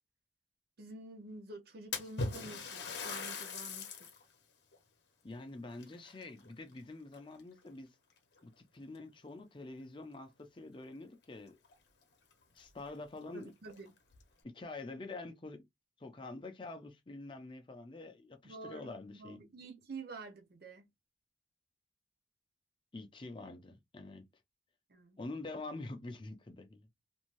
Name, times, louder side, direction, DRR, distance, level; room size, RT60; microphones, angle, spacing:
voice 1, 0.8-4.1 13.3-13.9 18.4-20.9 24.9-25.2, right 3 dB, 55° right, 0.6 m, -49 dB
Splash splatter, 1.9-4.2 4.7-4.8 5.7-6.8 7.1-7.6 8.4-8.5 9.0-9.1 11.2-11.3 11.6-11.7 12.3-12.4 12.8-12.9 13.6-14.2, left 4 dB, 60° left, 0.7 m, -41 dB
voice 2, 5.2-8.0 8.4-11.6 12.5-13.5 14.4-15.6 16.0-19.4 22.9-24.3 25.2-26.9, left 2 dB, 25° left, 0.5 m, -46 dB
2.6 x 2.2 x 3.0 m
head